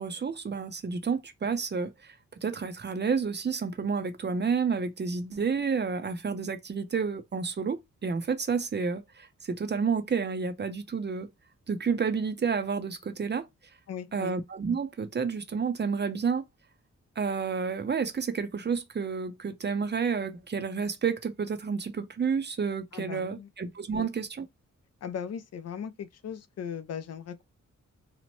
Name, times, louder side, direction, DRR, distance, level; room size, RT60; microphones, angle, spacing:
voice 1, 0.0-2.1 2.4-11.3 11.7-13.5 14.1-16.4 17.2-24.5, right 5 dB, 35° right, 0.5 m, -30 dB
voice 2, 13.9-14.3 22.9-23.5 23.9-24.1 25.0-27.4, left 7 dB, 60° left, 0.4 m, -38 dB
2.9 x 2.0 x 3.0 m
cardioid pair, 95°, 30 cm